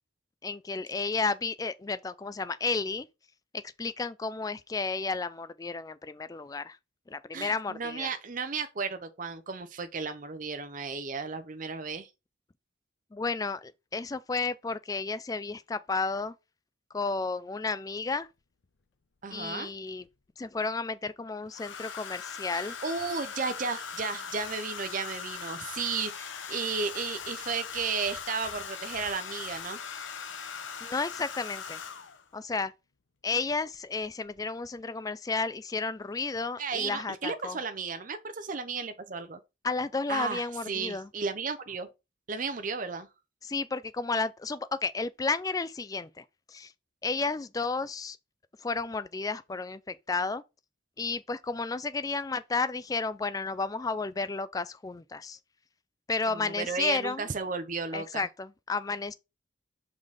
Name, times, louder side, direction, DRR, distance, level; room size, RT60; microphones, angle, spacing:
voice 1, 0.4-3.1 3.8-6.8 7.1-8.1 13.1-16.3 16.9-18.3 19.3-20.0 20.4-22.8 30.8-31.8 32.3-32.7 33.2-37.6 39.6-41.1 43.4-46.7 47.0-48.2 48.6-50.4 51.0-55.4 56.1-57.3 57.9-59.1, left 4 dB, 20° left, 0.3 m, -32 dB
voice 2, 7.3-12.1 19.2-19.7 22.5-29.8 36.6-39.4 40.1-41.9 42.3-43.1 56.3-58.3, right 5 dB, 45° right, 0.6 m, -34 dB
Domestic sounds home sounds, 17.9-18.0 19.4-20.1 21.5-32.3 33.5-33.8 34.0-34.4, left 6 dB, 75° left, 0.7 m, -40 dB
5.4 x 3.9 x 4.8 m
head